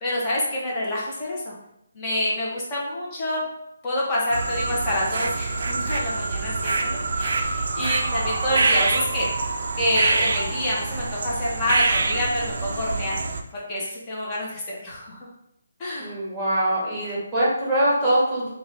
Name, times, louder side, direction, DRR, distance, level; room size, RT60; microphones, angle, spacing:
voice 1, 0.0-1.5 1.9-3.4 3.8-9.3 9.8-13.2 13.5-15.2 15.8-16.2, left 1 dB, 20° left, -6 dB, 1.0 m, -27 dB
sound 1, 4.3-13.4, right 3 dB, 55° right, 0.4 m, -25 dB
voice 2, 16.0-18.5, right 1 dB, 10° right, -8 dB, 1.3 m, -23 dB
3.5 x 2.5 x 3.4 m, 0.80 s
hypercardioid pair, 165°, 0 cm